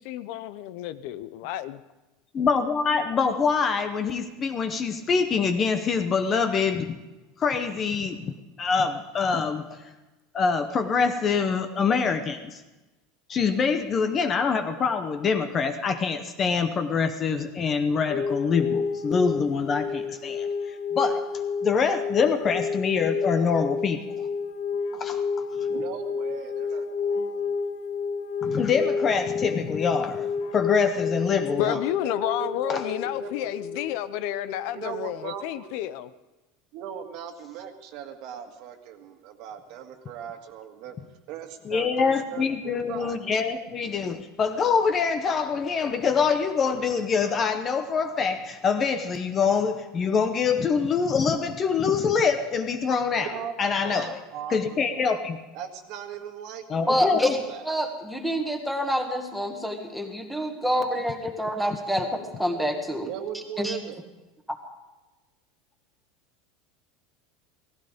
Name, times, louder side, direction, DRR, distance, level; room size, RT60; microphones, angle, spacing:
voice 1, 0.0-1.8 31.6-36.1, left 13 dB, 55° left, 14 dB, 0.6 m, -31 dB
voice 2, 2.3-6.9 7.4-8.3 8.6-9.9 10.3-12.6 13.3-24.0 24.9-25.2 28.4-31.8 32.7-32.8 41.7-53.3 53.6-54.2 54.5-55.4 56.7-57.3, left 5 dB, 25° left, 8 dB, 0.8 m, -25 dB
sound 1, 18.1-35.0, left 5 dB, 85° left, 1.5 m, -30 dB
voice 3, 25.5-27.4 31.6-33.8 34.7-35.7 36.7-41.0 41.3-43.2 53.2-55.1 55.5-57.7 63.1-64.0, right 9 dB, 50° right, 5 dB, 1.8 m, -39 dB
voice 4, 56.9-57.4 57.6-63.1 63.6-63.8, equal, ahead, 3 dB, 1.6 m, -27 dB
17.5 x 15.5 x 5.1 m, 1.1 s
supercardioid pair, 170°, 0 cm